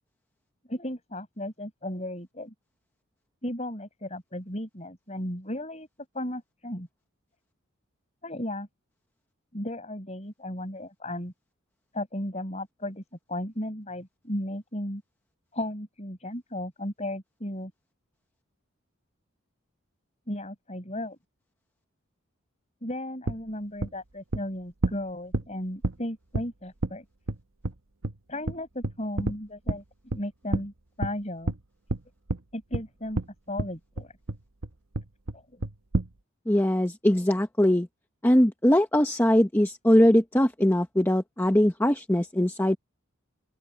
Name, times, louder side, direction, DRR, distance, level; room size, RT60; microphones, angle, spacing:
voice 1, 0.7-2.5 3.4-5.9 6.1-6.9 8.2-8.7 9.5-11.3 11.9-13.0 13.3-15.0 15.5-17.7 20.3-21.2 22.8-27.0 28.3-29.8 30.1-31.5 32.5-33.2 33.5-34.1 35.3-35.6, left 1 dB, 30° left, 5.5 m, -35 dB
sound 1, 23.3-23.4 23.8-23.9 24.3-24.4 24.8-25.0 25.3-25.5 25.8-25.9 26.3-26.5 26.8-26.9 27.3-27.4 27.6-27.7 28.0-28.1 28.5-28.6 28.8-29.4 29.7-29.8 30.1-30.2 30.5-30.7 31.0-31.1 31.5-31.6 31.9-32.0 32.3-32.4 32.7-32.8 33.2-33.3 33.6-33.7 34.0-34.4 34.6-34.7 34.9-35.4 35.6-36.1, right 2 dB, 70° right, 1.0 m, -28 dB
voice 2, 36.5-37.9 38.2-42.8, left 1 dB, 10° left, 0.9 m, -21 dB
open air
head